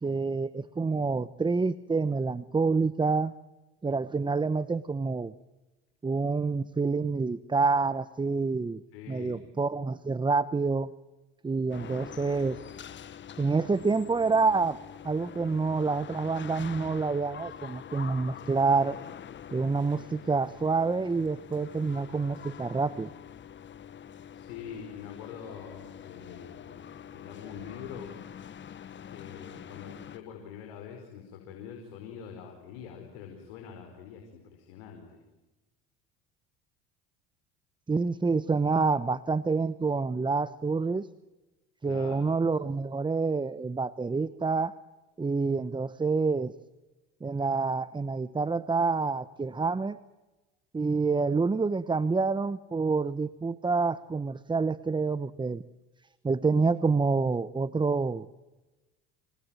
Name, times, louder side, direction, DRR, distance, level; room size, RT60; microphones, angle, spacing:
voice 1, 0.0-3.3 3.8-5.3 6.0-8.8 9.1-10.9 11.4-12.6 13.4-14.8 15.0-19.0 19.5-23.1 37.9-41.1 41.8-44.8 45.2-46.5 47.2-50.0 50.7-55.6 56.2-58.3, right 4 dB, 15° right, 15 dB, 0.9 m, -27 dB
voice 2, 8.9-9.4 24.3-28.1 29.1-35.2 41.8-42.3, left 7 dB, 85° left, 3 dB, 5.2 m, -44 dB
sound 1, 11.7-30.2, left 9 dB, 40° left, 1.2 m, -45 dB
28.5 x 20.0 x 9.2 m, 1.1 s
supercardioid pair, 95°, 31 cm